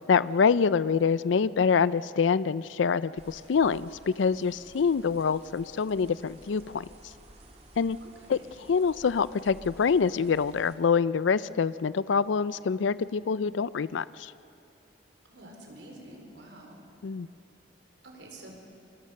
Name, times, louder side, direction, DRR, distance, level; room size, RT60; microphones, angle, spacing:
voice 1, 0.1-6.9 7.8-8.0 8.3-8.4 8.7-14.3 17.0-17.3, left 6 dB, 90° left, 17 dB, 0.4 m, -25 dB
sound 1, 3.2-10.8, right 1 dB, 35° right, 2.9 m, -53 dB
voice 2, 8.0-8.5 15.3-16.8 18.0-18.5, right 1 dB, 75° right, 2 dB, 4.6 m, -48 dB
27.5 x 22.5 x 6.5 m, 2.9 s
head